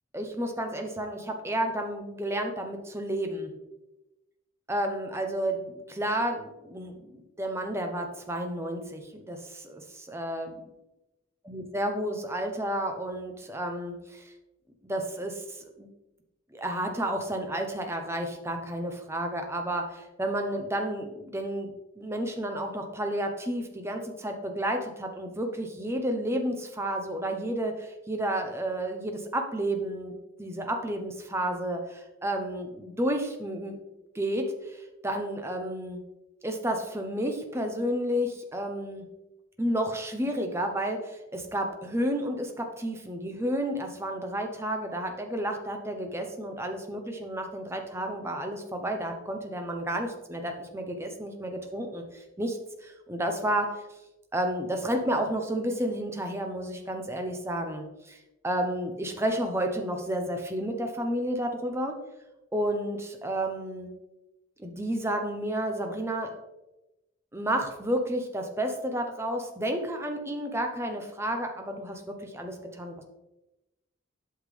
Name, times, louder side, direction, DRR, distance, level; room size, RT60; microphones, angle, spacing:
voice 1, 0.1-3.5 4.7-10.5 11.5-14.3 14.8-15.9 16.5-33.8 34.1-36.0 36.4-39.1 39.6-53.8 54.3-58.2 58.4-62.0 62.5-63.9 64.6-66.3 67.3-73.0, right 1 dB, 15° right, 4 dB, 0.8 m, -31 dB
8.3 x 5.8 x 3.3 m, 0.99 s
head